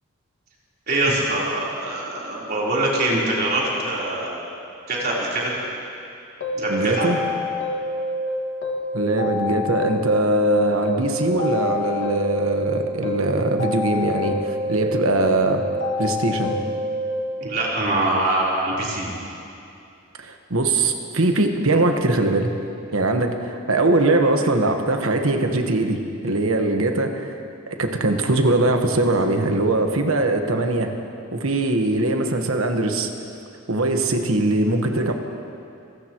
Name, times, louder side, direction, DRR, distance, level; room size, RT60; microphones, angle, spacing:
voice 1, 0.9-4.4 4.9-5.5 6.5-7.1 17.4-19.1, right 2 dB, 45° right, -6 dB, 3.7 m, -23 dB
sound 1, 6.4-8.3 8.6-10.5 10.8-12.7 13.0-14.9 15.2-17.1, left 2 dB, 65° left, 1.9 m, -27 dB
voice 2, 6.7-7.2 8.9-15.6 16.0-16.6 20.2-22.5 22.9-27.4 27.7-30.9 31.3-33.1 33.7-35.1, right 2 dB, 85° right, 5 dB, 1.3 m, -21 dB
25.5 x 16.0 x 3.0 m, 2.6 s
head